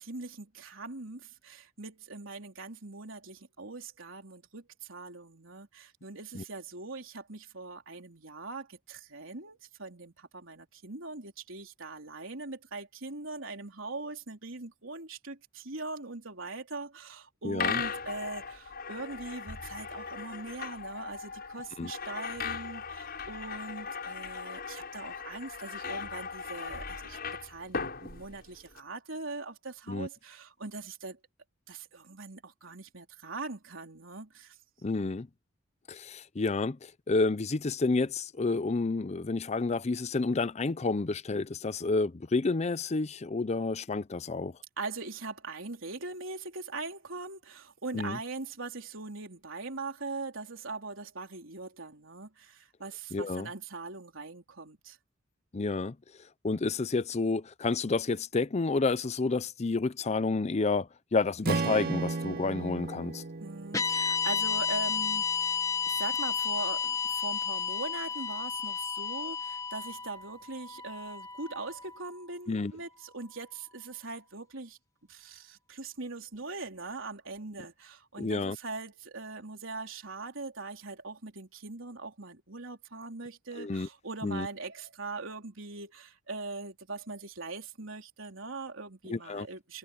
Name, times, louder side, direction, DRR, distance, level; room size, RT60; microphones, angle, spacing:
voice 1, 0.0-31.2 31.7-34.6 44.8-55.0 63.4-65.6 65.9-74.8 75.1-89.8, right 3 dB, 70° right, 3.9 m, -41 dB
voice 2, 17.4-17.8 21.8-21.9 29.9-30.1 34.8-35.3 35.9-44.5 47.9-48.2 53.1-53.5 55.5-56.0 56.4-63.2 72.5-72.7 78.2-78.6 83.6-83.9 84.2-84.5 89.1-89.5, left 3 dB, 35° left, 0.5 m, -30 dB
sound 1, 17.6-28.8, left 5 dB, 50° left, 6.3 m, -38 dB
Strum, 61.4-65.7, right 3 dB, 45° right, 0.6 m, -36 dB
sound 2, 63.7-72.0, left 6 dB, 15° left, 1.2 m, -32 dB
head